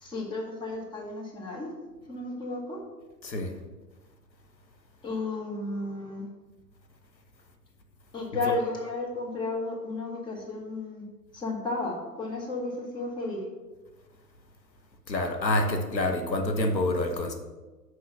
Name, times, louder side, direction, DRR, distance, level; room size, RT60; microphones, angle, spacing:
voice 1, 0.0-1.7 2.1-2.8 5.0-6.2 8.1-11.0 11.3-13.4, left 2 dB, 10° left, -1 dB, 1.1 m, -33 dB
voice 2, 3.2-3.6 8.4-8.5 15.1-17.3, left 1 dB, 90° left, 4 dB, 1.2 m, -27 dB
6.3 x 4.7 x 6.0 m, 1.2 s
figure-of-eight pair, 120°, 50 cm